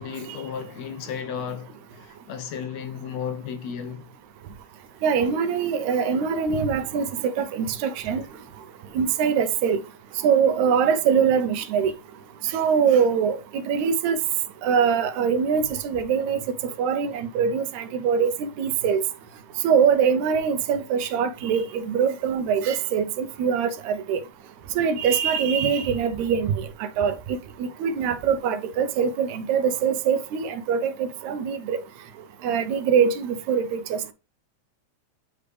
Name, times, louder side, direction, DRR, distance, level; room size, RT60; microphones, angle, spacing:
voice 1, 0.0-4.1, left 7 dB, 75° left, 2.0 m, -34 dB
voice 2, 5.0-8.2 9.0-9.8 10.2-11.9 12.5-13.4 13.7-14.2 14.6-16.4 16.8-19.0 19.6-24.2 24.8-26.7 27.0-27.1 27.6-31.8 32.4-34.1, right 7 dB, 80° right, 2.0 m, -23 dB
9.7 x 3.3 x 3.2 m
omnidirectional pair, 3.3 m